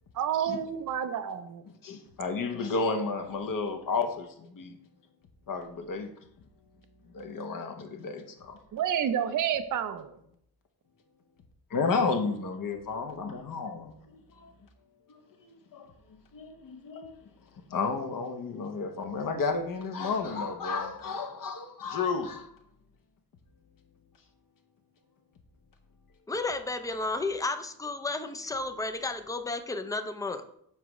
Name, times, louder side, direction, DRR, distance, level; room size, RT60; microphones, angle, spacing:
voice 1, 0.2-1.6 8.7-10.1, right 9 dB, 50° right, 0.5 m, -29 dB
voice 2, 1.8-4.8 5.5-6.1 7.1-8.6 11.7-14.5 15.7-15.9 16.3-17.1 17.7-22.5, left 4 dB, 55° left, 0.9 m, -32 dB
voice 3, 26.3-30.4, left 3 dB, 10° left, 0.5 m, -32 dB
7.2 x 4.8 x 3.0 m
cardioid pair, 90°, 40 cm